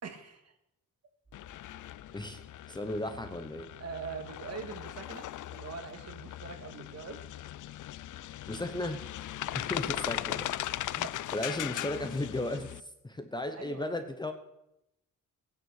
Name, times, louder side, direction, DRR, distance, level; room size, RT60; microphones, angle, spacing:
voice 1, 0.0-0.5 3.8-5.3 5.5-7.2 13.5-13.9, right 5 dB, 45° right, 5 dB, 2.1 m, -42 dB
sound 1, 1.2-11.1, left 5 dB, 15° right, 5.8 m, -63 dB
sound 2, 1.3-12.8, left 13 dB, 65° left, 0.5 m, -39 dB
voice 2, 2.7-3.7 8.5-9.0 9.5-10.5 10.9-14.3, left 1 dB, 15° left, 7 dB, 0.9 m, -35 dB
18.5 x 9.4 x 6.6 m, 0.85 s
wide cardioid pair, 165°, 34 cm